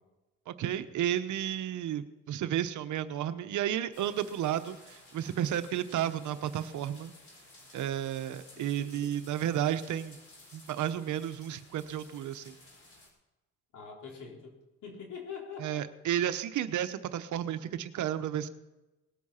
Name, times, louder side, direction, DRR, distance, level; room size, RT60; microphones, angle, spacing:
voice 1, 0.5-7.1 7.7-10.2 10.5-12.6 15.6-18.5, right 11 dB, 75° right, 10 dB, 0.9 m, -32 dB
sound 1, 3.9-13.1, left 2 dB, 45° left, 4.5 m, -55 dB
voice 2, 8.6-9.1 13.7-14.6 14.8-15.8, left 6 dB, 80° left, -1 dB, 3.9 m, -44 dB
18.5 x 8.6 x 5.7 m, 1.1 s
cardioid pair, 90°, 30 cm